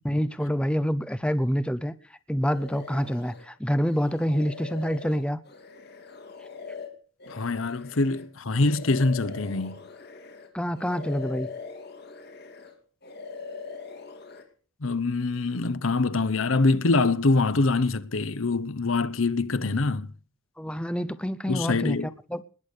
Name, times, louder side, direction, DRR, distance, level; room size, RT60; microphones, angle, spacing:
voice 1, 0.0-1.9 2.3-5.4 10.5-11.5 20.6-22.0 22.3-22.4, equal, 5° left, 0.7 m, -27 dB
sound 1, 2.5-3.5 3.9-10.5 10.7-12.7 13.0-14.4, left 5 dB, 50° left, 2.9 m, -42 dB
voice 2, 7.3-9.8 14.8-20.1 21.5-22.1, left 3 dB, 75° left, 0.9 m, -24 dB
20.0 x 8.3 x 6.6 m
head